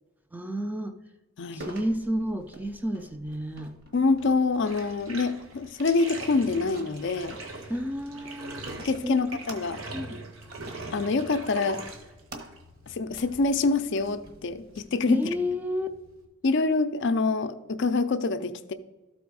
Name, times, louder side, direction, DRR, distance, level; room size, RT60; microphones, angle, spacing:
voice 1, 0.3-1.0 1.5-3.7 7.7-8.7 9.0-9.2 9.9-10.2 15.1-15.9, equal, 10° right, 7 dB, 0.4 m, -31 dB
sound 1, 1.6-14.8, right 1 dB, 45° right, 1.2 m, -49 dB
voice 2, 3.9-7.4 8.8-9.8 10.9-11.8 12.9-15.2 16.4-18.7, left 3 dB, 55° left, 10 dB, 0.5 m, -26 dB
Bathtub (filling or washing), 4.6-16.2, right 2 dB, 70° right, 1.2 m, -43 dB
12.5 x 4.2 x 4.7 m, 1.1 s
head